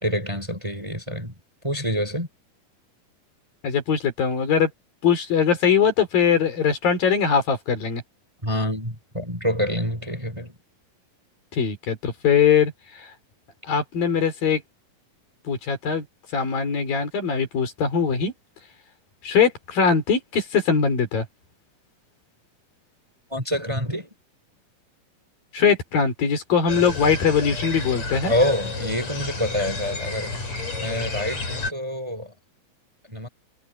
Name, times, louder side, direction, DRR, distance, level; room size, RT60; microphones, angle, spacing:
voice 1, 0.0-1.3 1.6-2.3 8.4-10.5 23.3-24.1 28.3-30.3 30.8-32.3 33.1-33.3, left 1 dB, 10° right, 4.1 m, -26 dB
voice 2, 3.6-4.7 5.0-8.0 11.5-12.7 13.0-13.1 13.7-14.6 15.5-16.0 16.3-18.3 19.2-21.3 25.5-28.3, left 6 dB, 70° left, 5.7 m, -21 dB
sound 1, 26.7-31.7, left 3 dB, 50° left, 8.1 m, -31 dB
omnidirectional pair, 4.2 m